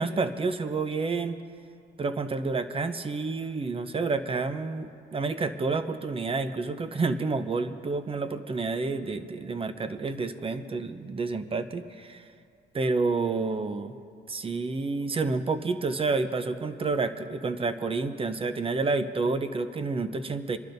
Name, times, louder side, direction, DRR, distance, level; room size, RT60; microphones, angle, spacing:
voice 1, 0.0-1.4 2.0-12.2 12.7-13.9 14.3-20.6, right 3 dB, 30° right, 10 dB, 0.7 m, -29 dB
28.5 x 11.5 x 2.6 m, 2.4 s
cardioid pair, 90°, 20 cm